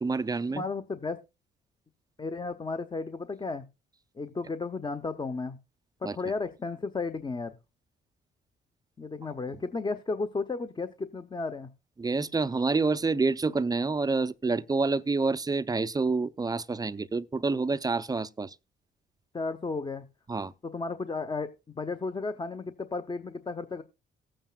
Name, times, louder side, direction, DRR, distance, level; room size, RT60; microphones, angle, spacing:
voice 1, 0.0-0.6 6.0-6.2 12.0-18.5 20.3-20.5, right 3 dB, 20° right, 0.5 m, -28 dB
voice 2, 0.5-1.2 2.2-3.6 4.2-5.6 6.0-7.6 9.0-11.7 19.3-20.1 20.6-23.8, left 3 dB, 25° left, 0.7 m, -33 dB
17.5 x 8.9 x 2.3 m
cardioid pair, 90°, 20 cm